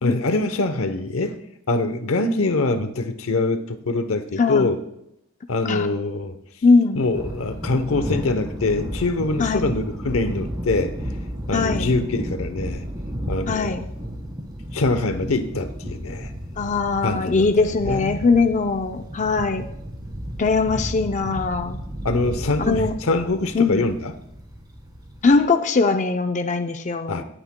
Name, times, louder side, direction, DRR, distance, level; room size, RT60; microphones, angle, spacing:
voice 1, 0.0-1.4 1.7-4.8 5.5-6.3 7.0-10.9 11.5-12.8 13.3-13.9 14.7-16.3 17.0-18.2 22.0-24.1 27.1-27.2, left 2 dB, 85° left, 9 dB, 0.8 m, -24 dB
voice 2, 4.4-4.7 5.6-5.9 6.6-7.0 9.4-9.7 11.5-11.9 13.5-13.8 16.6-19.7 20.4-21.8 22.6-22.9 23.5-23.8 25.2-27.2, left 4 dB, 35° left, 6 dB, 0.5 m, -20 dB
Thunder, 7.0-25.4, equal, 20° right, 1.8 m, -33 dB
19.5 x 8.9 x 2.2 m, 0.80 s
head